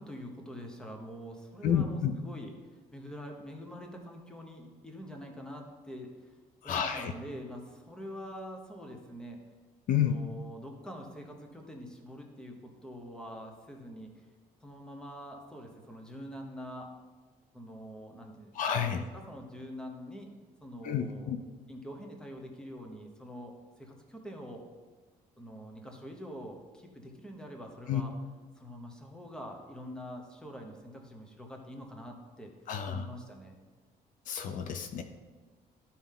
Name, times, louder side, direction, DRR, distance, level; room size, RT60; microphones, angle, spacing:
voice 1, 0.0-2.5 2.9-6.1 6.6-9.4 9.9-14.2 14.6-16.9 17.5-20.3 20.6-21.3 21.7-24.6 25.4-28.1 28.6-32.5 32.9-33.6, equal, 5° left, 2 dB, 0.9 m, -45 dB
voice 2, 1.6-2.1 6.6-7.1 9.9-10.1 18.5-19.0 20.8-21.4 27.9-28.0 32.7-33.1 34.3-35.0, left 8 dB, 60° left, 7 dB, 0.6 m, -30 dB
12.5 x 4.3 x 3.7 m, 1.3 s
cardioid pair, 160°, 15 cm